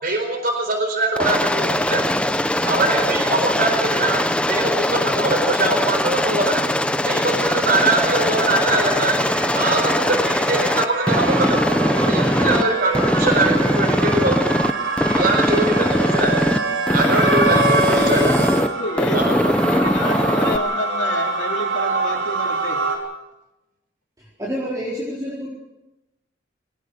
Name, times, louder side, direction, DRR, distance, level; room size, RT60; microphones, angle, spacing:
voice 1, 0.0-2.0 2.6-6.7 7.0-9.2 9.5-11.6 12.0-14.6 15.1-16.4 16.9-18.3 19.1-19.3, right 2 dB, 45° right, 5 dB, 4.3 m, -22 dB
Aircraft, 1.2-12.6 12.9-14.7 15.0-16.6 16.9-18.7 19.0-20.6, left 1 dB, 5° left, 0.8 m, -21 dB
sound 1, 7.8-23.0, right 3 dB, 80° right, 4.7 m, -25 dB
voice 2, 17.8-22.8, left 1 dB, 65° left, 2 dB, 3.2 m, -28 dB
voice 3, 24.2-25.5, equal, 20° right, -5 dB, 4.5 m, -28 dB
23.0 x 19.0 x 6.7 m, 0.95 s
head